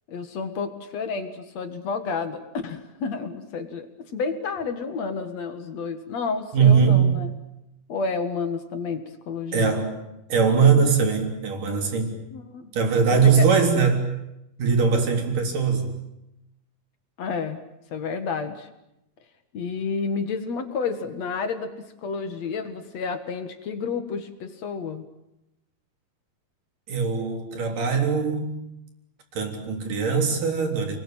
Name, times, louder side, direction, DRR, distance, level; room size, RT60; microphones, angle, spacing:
voice 1, 0.1-7.3 7.9-9.8 12.3-12.7 13.2-13.5 17.2-17.6 17.9-18.7 19.5-25.1, left 5 dB, 50° left, 8 dB, 2.6 m, -30 dB
voice 2, 6.5-7.1 9.5-12.2 12.7-14.0 14.6-15.9 26.9-28.6 29.3-31.0, right 5 dB, 55° right, 3 dB, 5.2 m, -21 dB
29.5 x 21.0 x 8.9 m, 0.88 s
omnidirectional pair, 4.5 m